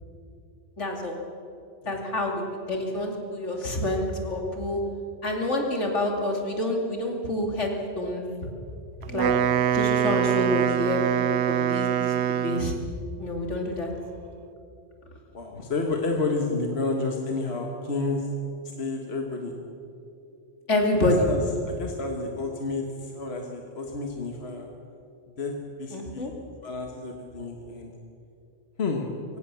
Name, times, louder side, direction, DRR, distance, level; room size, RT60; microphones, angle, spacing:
voice 1, 0.8-1.2 1.8-4.8 5.2-7.7 7.9-8.2 9.1-9.3 9.7-11.0 11.5-12.7 13.2-13.9 20.7-21.3 25.9-26.3, left 1 dB, 80° left, 1 dB, 3.1 m, -27 dB
Wind instrument woodwind instrument, 9.0-12.9, right 9 dB, 70° right, 0.9 m, -24 dB
voice 2, 15.3-18.3 18.8-19.5 21.0-24.7 25.4-26.3 26.6-27.9 28.8-29.1, left 3 dB, 60° left, 2 dB, 1.8 m, -30 dB
23.0 x 17.5 x 7.0 m, 2.7 s
omnidirectional pair, 1.2 m